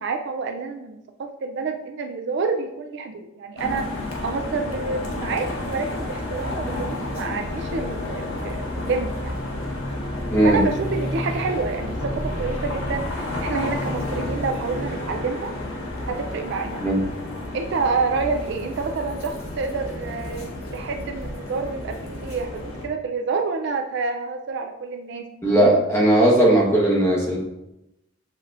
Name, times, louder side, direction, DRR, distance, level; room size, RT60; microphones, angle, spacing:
voice 1, 0.0-3.9 4.2-9.3 10.4-15.5 16.1-16.8 17.5-20.5 20.7-25.3, right 4 dB, 55° right, 5 dB, 0.3 m, -28 dB
sound 1, 3.6-22.9, left 1 dB, 85° left, 1.0 m, -31 dB
voice 2, 10.3-10.6 16.8-17.0 25.4-27.4, right 1 dB, 15° left, -3 dB, 1.0 m, -17 dB
7.1 x 2.8 x 2.4 m, 0.89 s
head